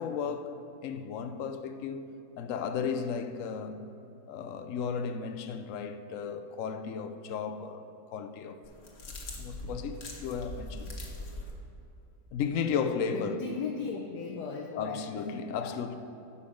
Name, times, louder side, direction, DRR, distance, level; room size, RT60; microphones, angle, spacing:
voice 1, 0.0-2.1 2.4-3.9 4.3-7.8 8.1-8.6 9.4-10.9 12.3-13.4 14.7-16.0, left 6 dB, 65° left, 0.9 m, -34 dB
sound 1, 8.6-11.5, left 1 dB, 45° left, 1.3 m, -41 dB
voice 2, 13.1-15.0 15.5-15.8, left 5 dB, 80° left, 1.4 m, -36 dB
12.5 x 5.6 x 5.2 m
omnidirectional pair, 1.7 m